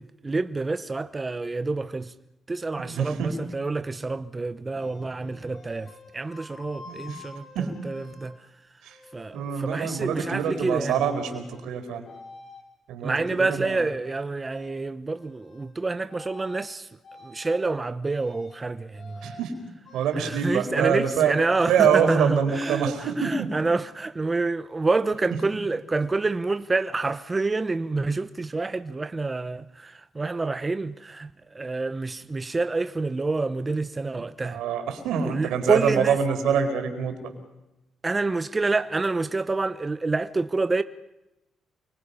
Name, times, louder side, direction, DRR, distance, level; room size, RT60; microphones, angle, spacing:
voice 1, 0.0-2.1 2.5-8.5 9.1-11.0 13.0-16.9 17.2-19.4 20.1-34.6 35.2-36.2 38.0-40.8, right 3 dB, 25° right, 0.9 m, -28 dB
voice 2, 2.8-3.3 6.8-7.2 7.5-7.7 8.8-9.0 9.3-12.1 12.9-13.1 13.5-13.8 19.2-19.5 19.9-21.3 21.7-23.5 34.4-37.3, right 7 dB, 85° right, 4.6 m, -25 dB
sound 1, 4.8-8.3 8.9-9.7 10.0-10.7 11.0-11.7 12.1-12.6 13.1-14.3 14.5-14.8 15.1-15.7 16.1-16.7 17.0-17.6 18.0-18.6 18.9-19.5 19.8-21.5, left 3 dB, 60° left, 7.2 m, -49 dB
28.5 x 24.5 x 5.7 m
cardioid pair, 90°, 0 cm